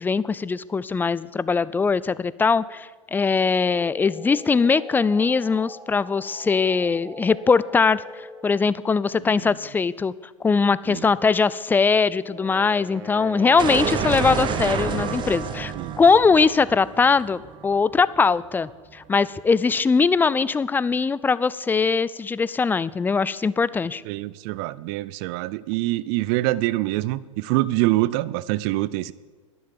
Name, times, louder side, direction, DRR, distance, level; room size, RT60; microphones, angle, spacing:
voice 1, 0.0-10.1 10.4-24.0, left 5 dB, 10° left, 19 dB, 0.4 m, -21 dB
sound 1, 3.7-8.6, left 1 dB, 10° right, 3.0 m, -42 dB
Wind instrument woodwind instrument, 12.2-15.8, right 1 dB, 70° right, 1.9 m, -37 dB
sound 2, 13.6-18.3, right 7 dB, 30° right, 1.0 m, -29 dB
voice 2, 24.0-29.1, right 17 dB, 50° right, 19 dB, 0.6 m, -25 dB
11.0 x 10.0 x 7.3 m, 1.5 s
hypercardioid pair, 90°, 17 cm